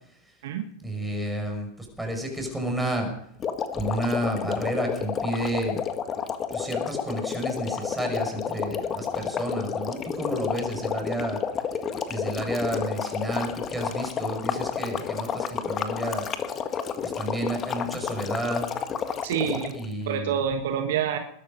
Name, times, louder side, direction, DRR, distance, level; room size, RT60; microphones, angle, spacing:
voice 1, 0.8-3.1 3.7-5.8 6.5-11.4 12.1-16.3 17.0-18.7 19.4-20.3, right 1 dB, 5° right, 2 dB, 5.7 m, -31 dB
sound 1, 3.4-19.9, left 7 dB, 25° left, 1.6 m, -30 dB
voice 2, 19.2-19.7 20.0-21.2, right 8 dB, 55° right, 7 dB, 1.5 m, -27 dB
21.0 x 12.0 x 5.3 m, 0.70 s
figure-of-eight pair, 90°, 0 cm